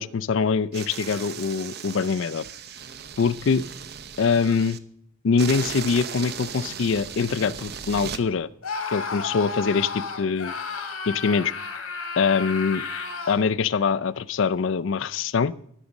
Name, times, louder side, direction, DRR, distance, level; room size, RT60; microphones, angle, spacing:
voice 1, 0.0-2.4 3.2-3.6 4.2-4.8 5.2-8.5 8.9-10.5 11.1-11.5 12.2-12.8 13.3-15.5, left 5 dB, 60° left, 19 dB, 0.4 m, -23 dB
sound 1, 0.7-4.8 5.4-8.2, right 7 dB, 50° right, 0.7 m, -36 dB
Screaming, 8.6-13.5, left 4 dB, 80° left, 2.0 m, -32 dB
13.5 x 6.4 x 7.1 m, 0.71 s
head